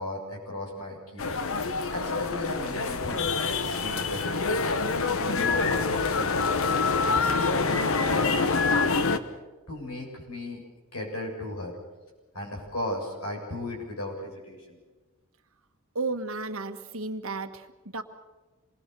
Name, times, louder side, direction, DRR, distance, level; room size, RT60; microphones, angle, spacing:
voice 1, 0.0-1.5 1.9-4.4 5.2-9.2 9.7-10.6 10.9-11.8 12.3-14.8, left 1 dB, 85° left, 1 dB, 7.3 m, -36 dB
sound 1, 1.2-9.2, left 4 dB, 70° left, 1.2 m, -26 dB
voice 2, 15.9-18.0, right 3 dB, 65° right, 9 dB, 1.5 m, -33 dB
27.0 x 20.5 x 6.9 m, 1.2 s
head